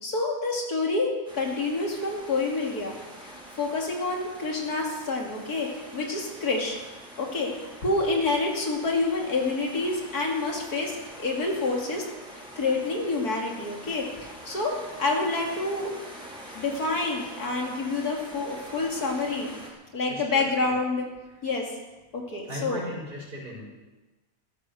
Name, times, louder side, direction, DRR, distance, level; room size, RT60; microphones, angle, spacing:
voice 1, 0.0-3.0 3.2-3.3 3.6-6.8 7.2-7.5 7.8-12.1 12.3-15.9 16.5-19.5 19.9-21.1 21.4-21.7 22.1-22.8, left 3 dB, 85° left, 0 dB, 3.1 m, -28 dB
sound 1, 1.2-19.7, equal, 5° right, 4.1 m, -45 dB
voice 2, 20.1-20.7 22.5-23.6, left 1 dB, 35° right, -5 dB, 5.0 m, -38 dB
14.0 x 13.5 x 6.6 m, 1.2 s
omnidirectional pair, 1.6 m